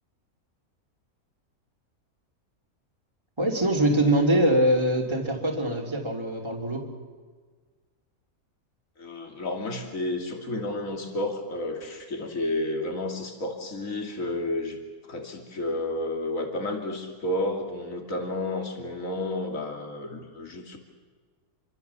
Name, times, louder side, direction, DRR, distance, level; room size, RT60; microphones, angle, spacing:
voice 1, 3.4-6.9, right 1 dB, 20° right, 0 dB, 2.9 m, -23 dB
voice 2, 9.0-14.8 15.1-20.8, left 1 dB, 60° left, 3 dB, 3.1 m, -31 dB
27.0 x 24.0 x 7.0 m, 1.5 s
omnidirectional pair, 1.6 m